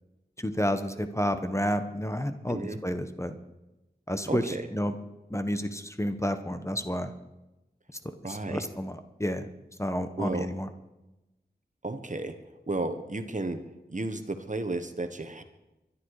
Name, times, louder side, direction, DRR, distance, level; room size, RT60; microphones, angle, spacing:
voice 1, 0.4-3.3 4.1-5.0 5.3-7.1 8.2-9.5 9.8-10.7, equal, 15° left, 9 dB, 1.2 m, -30 dB
voice 2, 2.5-2.8 4.3-4.7 8.2-8.7 10.2-10.5 11.8-12.4 12.7-13.6 13.9-15.4, right 2 dB, 45° right, 8 dB, 1.5 m, -33 dB
22.0 x 11.5 x 4.9 m, 0.99 s
wide cardioid pair, 40°, 18 cm